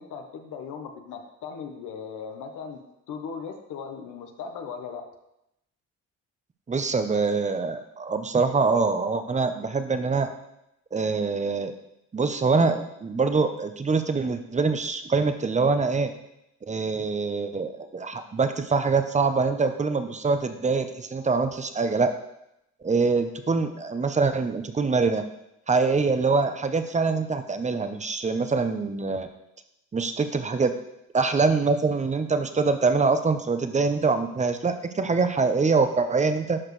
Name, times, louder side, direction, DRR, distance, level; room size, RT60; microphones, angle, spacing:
voice 1, 0.0-2.8 3.1-5.0, left 6 dB, 80° left, 4 dB, 1.0 m, -38 dB
voice 2, 6.7-10.3 10.9-11.7 12.1-16.1 16.6-22.1 22.8-25.2 25.7-29.3 29.9-30.7 31.1-36.6, right 4 dB, 25° right, 8 dB, 0.7 m, -24 dB
12.0 x 4.9 x 3.2 m, 0.84 s
cardioid pair, 90°, 30 cm